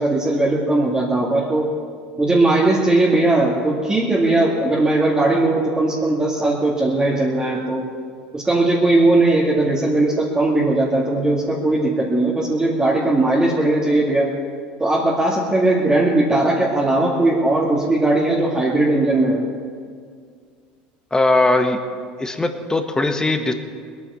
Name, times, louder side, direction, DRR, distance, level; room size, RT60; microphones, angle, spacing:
voice 1, 0.0-1.7 2.2-7.9 8.3-14.3 14.8-19.4, right 2 dB, 15° right, -5 dB, 2.4 m, -18 dB
voice 2, 21.1-21.8 22.2-23.5, left 2 dB, 15° left, 6 dB, 1.6 m, -19 dB
20.0 x 9.5 x 7.1 m, 2.1 s
hypercardioid pair, 85°, 5 cm